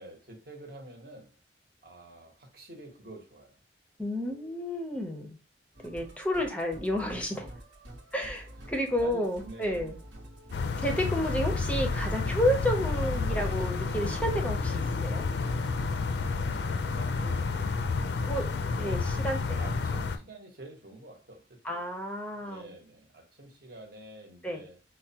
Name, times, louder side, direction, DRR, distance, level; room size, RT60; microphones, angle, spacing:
voice 1, 0.0-1.4 1.8-3.6 8.6-8.7 9.0-9.9 16.5-19.0 19.6-21.8 22.4-24.8, right 2 dB, 55° right, 0.9 m, -48 dB
voice 2, 4.0-5.4 5.8-7.5 8.1-10.0 10.8-15.2 18.2-18.5 18.8-19.6 21.6-22.8 24.4-24.6, equal, 5° left, 0.5 m, -31 dB
Musical instrument, 5.7-17.7, equal, 80° right, 1.0 m, -42 dB
sound 1, 10.5-20.2, left 4 dB, 65° left, 0.4 m, -30 dB
4.5 x 2.1 x 2.7 m
head